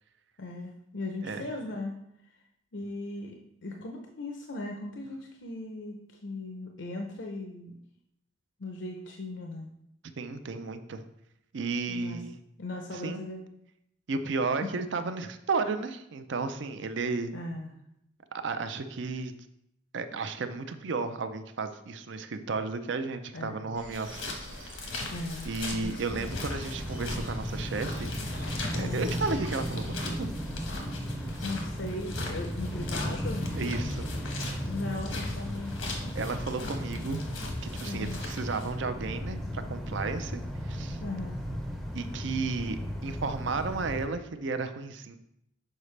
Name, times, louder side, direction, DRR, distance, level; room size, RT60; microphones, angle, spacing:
voice 1, 0.4-1.9 2.7-7.7 8.6-9.7 11.9-12.2 12.6-13.4 14.6-14.7 17.3-17.7 23.3-23.7 25.1-26.0 28.7-29.1 31.4-33.5 34.6-35.7 37.8-38.2 41.0-41.4, left 2 dB, 65° left, 1 dB, 0.6 m, -38 dB
voice 2, 10.2-11.0 11.5-12.4 12.9-13.2 14.1-17.3 18.4-19.3 19.9-24.2 24.6-24.9 25.4-28.1 28.7-30.3 33.5-34.1 36.2-37.2 37.6-41.0 41.9-45.2, right 4 dB, 65° right, 9 dB, 0.5 m, -33 dB
sound 1, 23.8-30.0, right 1 dB, 40° right, 0.8 m, -45 dB
sound 2, 23.9-38.7, left 3 dB, 85° left, 1.1 m, -41 dB
sound 3, 26.1-44.1, equal, ahead, 0.5 m, -35 dB
6.6 x 4.9 x 3.2 m, 0.77 s
head